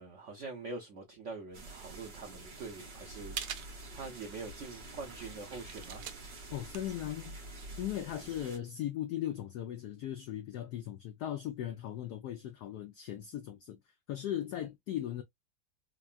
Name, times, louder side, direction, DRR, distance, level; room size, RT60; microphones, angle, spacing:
voice 1, 0.0-6.0, right 3 dB, 90° right, 0.6 m, -44 dB
sound 1, 1.5-8.6, right 2 dB, 50° right, 0.7 m, -48 dB
sound 2, 1.5-8.0, right 9 dB, 70° right, 1.0 m, -47 dB
voice 2, 6.5-7.4 7.8-13.8 14.1-15.2, left 11 dB, 75° left, 0.9 m, -38 dB
3.5 x 2.2 x 2.3 m
omnidirectional pair, 2.1 m